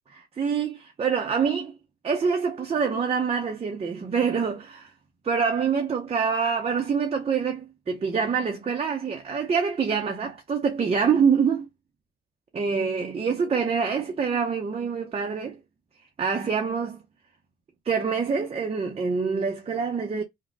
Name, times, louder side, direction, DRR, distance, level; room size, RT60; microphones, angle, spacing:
voice 1, 0.1-1.7 2.0-4.9 5.2-11.7 12.5-15.6 16.2-17.0 17.9-20.2, right 6 dB, 30° right, 0.6 m, -25 dB
3.1 x 2.1 x 3.8 m
cardioid pair, 90°, 20 cm